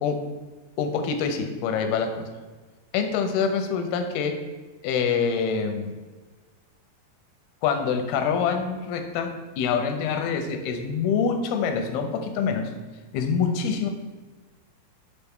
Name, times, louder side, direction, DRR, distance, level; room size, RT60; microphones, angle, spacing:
voice 1, 0.8-2.3 2.9-4.4 4.8-5.9 7.6-12.7 13.1-13.9, left 6 dB, 85° left, 6 dB, 2.6 m, -25 dB
6.7 x 4.6 x 3.6 m, 1.3 s
omnidirectional pair, 4.3 m